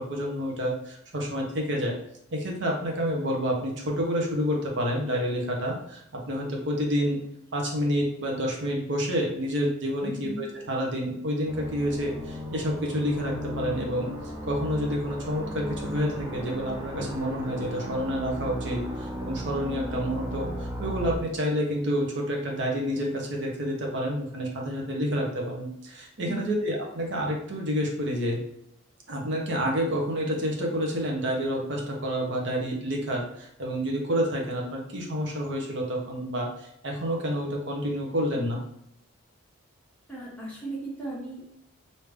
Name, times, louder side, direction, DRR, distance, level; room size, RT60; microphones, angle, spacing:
voice 1, 0.0-2.0 2.3-7.2 7.5-14.1 14.5-28.4 29.1-38.6, equal, 55° right, -1 dB, 0.8 m, -29 dB
voice 2, 10.0-10.4 26.2-26.6 40.1-41.4, right 1 dB, 5° left, -8 dB, 1.3 m, -36 dB
sound 1, 11.5-21.1, equal, 15° right, 0.4 m, -35 dB
3.4 x 2.7 x 3.2 m, 0.75 s
head